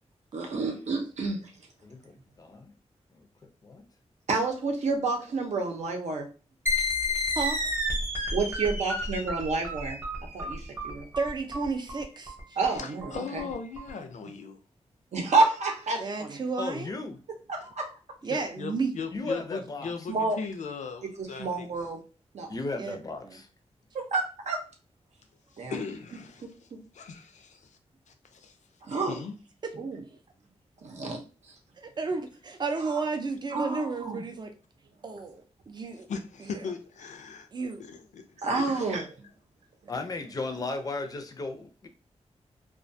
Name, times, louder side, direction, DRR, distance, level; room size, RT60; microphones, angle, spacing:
voice 1, 0.3-1.5 4.3-6.3 8.3-10.0 10.3-11.1 12.6-13.5 15.1-16.4 17.5-17.9 20.1-20.4 21.2-22.0 22.3-22.5 23.9-24.6 25.6-25.7 26.4-26.5 28.8-29.2 29.8-30.0 30.8-31.2 31.5-31.6 32.9-33.0 33.5-34.2 38.4-39.3, right 3 dB, 75° right, 0.7 m, -29 dB
voice 2, 1.8-2.7 3.1-3.3 3.6-3.8 16.6-17.2 19.1-19.9 22.5-23.5 39.9-41.9, left 3 dB, 30° left, 0.4 m, -35 dB
sound 1, 6.7-13.9, left 1 dB, 20° right, 0.8 m, -31 dB
voice 3, 11.2-12.6 16.0-16.9 18.2-18.9 22.8-23.0 23.2-23.4 29.6-29.8 31.8-34.5 35.0-36.1 36.5-36.6 37.5-37.8, right 4 dB, 40° right, 0.4 m, -32 dB
voice 4, 12.7-14.6 18.3-21.7 25.5-26.4 27.0-27.2 28.3-28.5 28.9-29.3 36.1-37.5 37.8-38.8, left 5 dB, 85° left, 0.4 m, -38 dB
2.3 x 2.2 x 2.6 m
wide cardioid pair, 130°, 12 cm